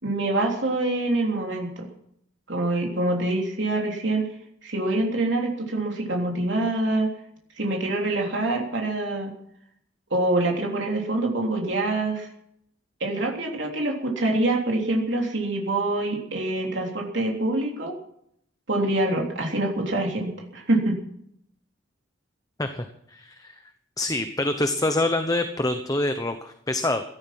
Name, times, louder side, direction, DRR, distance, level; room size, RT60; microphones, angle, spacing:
voice 1, 0.0-1.8 2.5-4.3 4.6-7.1 7.6-9.3 10.1-12.3 13.0-17.9 18.7-21.0, right 2 dB, 65° right, 0 dB, 3.4 m, -25 dB
voice 2, 22.6-23.6 24.0-27.0, left 2 dB, 20° left, 7 dB, 0.9 m, -26 dB
17.0 x 13.0 x 6.0 m, 0.71 s
head